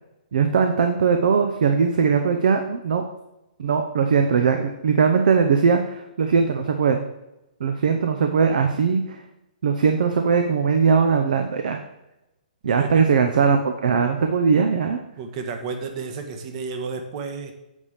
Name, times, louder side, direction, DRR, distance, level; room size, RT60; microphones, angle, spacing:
voice 1, 0.3-3.0 3.6-7.0 7.6-9.2 9.6-11.8 12.6-15.0, right 5 dB, 65° right, 6 dB, 0.8 m, -20 dB
voice 2, 12.7-13.0 15.2-17.5, right 4 dB, 40° right, 5 dB, 1.2 m, -32 dB
8.4 x 3.6 x 6.5 m, 0.92 s
hypercardioid pair, 130°, 5 cm